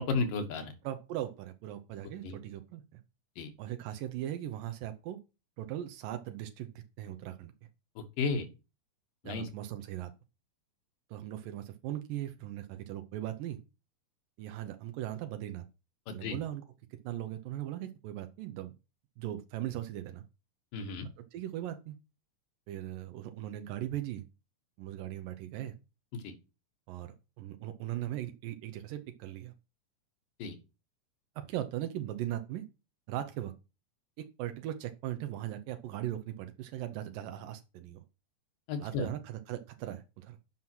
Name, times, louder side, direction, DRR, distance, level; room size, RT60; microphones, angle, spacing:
voice 1, 0.0-0.7 2.2-2.4 3.4-3.5 8.0-8.5 9.2-9.5 16.1-16.4 20.7-21.1 26.1-26.3 30.4-30.6 38.7-39.1, left 4 dB, 85° left, 6 dB, 3.2 m, -33 dB
voice 2, 0.8-3.0 3.6-5.2 5.6-7.5 9.2-10.1 11.1-13.6 14.4-15.7 16.1-16.6 16.9-18.7 19.2-20.2 21.3-22.0 22.7-24.2 24.8-25.8 26.9-29.5 31.4-32.6 33.1-33.5 34.2-38.0 38.8-40.4, right 12 dB, 90° right, 8 dB, 2.6 m, -39 dB
9.1 x 5.7 x 6.1 m, 0.29 s
omnidirectional pair, 3.8 m